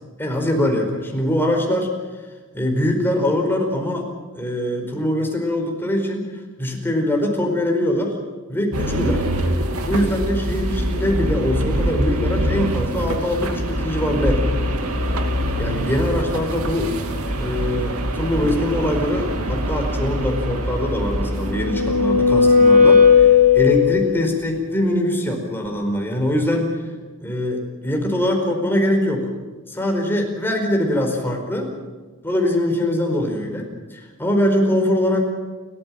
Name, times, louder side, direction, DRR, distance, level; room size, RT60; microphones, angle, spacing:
voice 1, 0.2-1.9 2.5-4.1 4.3-6.3 6.6-8.2 8.5-9.3 9.8-14.5 15.6-16.9 17.4-26.7 27.2-29.3 29.7-31.7 32.2-35.3, left 1 dB, 10° left, 2 dB, 4.8 m, -22 dB
sound 1, 8.7-23.9, equal, 85° right, 2.5 m, -24 dB
sound 2, 21.2-24.2, left 6 dB, 35° right, 2.2 m, -14 dB
30.0 x 14.5 x 7.7 m, 1.3 s
head